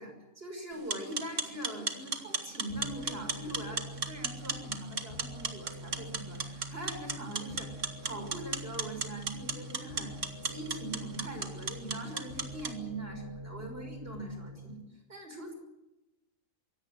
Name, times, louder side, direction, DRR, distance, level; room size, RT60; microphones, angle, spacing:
voice 1, 0.0-7.7 8.0-10.2 10.4-14.8 15.1-15.5, right 1 dB, 45° right, 4 dB, 6.2 m, -42 dB
sound 1, 0.7-12.7, right 4 dB, 65° right, 2.2 m, -37 dB
sound 2, 2.7-14.7, equal, 50° left, 5.9 m, -45 dB
23.5 x 17.5 x 7.8 m, 0.98 s
omnidirectional pair, 1.4 m